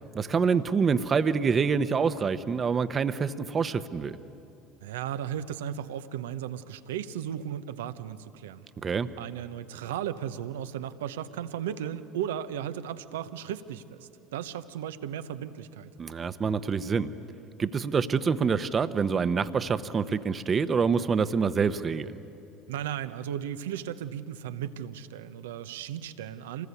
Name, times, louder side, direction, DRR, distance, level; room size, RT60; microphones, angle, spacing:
voice 1, 0.1-4.2 8.8-9.1 16.0-17.1 17.6-22.2, right 5 dB, 35° right, 12 dB, 1.0 m, -26 dB
voice 2, 4.8-8.7 9.2-15.9 22.7-26.7, right 10 dB, 80° right, 11 dB, 0.9 m, -35 dB
27.0 x 19.5 x 8.4 m, 2.9 s
hypercardioid pair, 75°, 0 cm